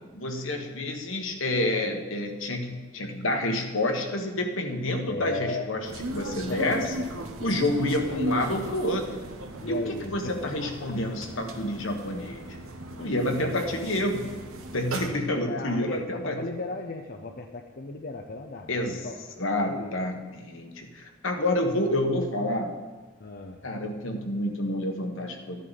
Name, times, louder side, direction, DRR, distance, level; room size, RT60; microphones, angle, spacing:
voice 1, 0.1-6.8 7.4-9.1 9.7-12.6 13.0-14.4 14.7-16.4 18.7-19.1 19.4-22.7 23.6-25.6, left 1 dB, 75° left, 3 dB, 1.4 m, -28 dB
voice 2, 5.1-5.8 6.5-7.1 9.6-10.1 10.4-10.9 13.0-13.6 15.0-19.2 19.6-19.9 23.2-23.6, left 3 dB, 50° left, 4 dB, 0.7 m, -37 dB
sound 1, 5.8-15.1, right 1 dB, 90° right, 1.2 m, -37 dB
14.0 x 10.5 x 4.1 m, 1.3 s
head